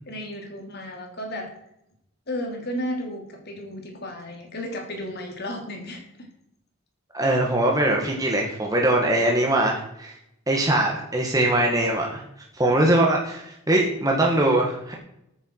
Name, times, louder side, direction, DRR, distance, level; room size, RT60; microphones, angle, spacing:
voice 1, 0.1-1.5 2.3-6.3, equal, 45° left, 2 dB, 3.2 m, -33 dB
voice 2, 7.1-10.1 10.5-12.2 12.5-14.9, right 1 dB, 15° right, 0 dB, 1.8 m, -22 dB
13.5 x 9.8 x 4.8 m, 0.78 s
head